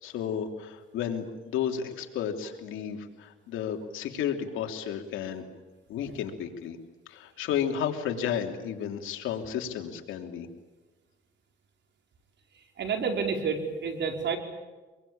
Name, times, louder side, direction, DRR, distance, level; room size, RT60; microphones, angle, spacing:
voice 1, 0.0-5.4 5.9-6.8 7.1-10.5, left 8 dB, 90° left, 4 dB, 3.1 m, -32 dB
voice 2, 12.8-14.4, right 5 dB, 65° right, 4 dB, 4.7 m, -29 dB
25.5 x 23.0 x 8.8 m, 1.2 s
cardioid pair, 90°, 20 cm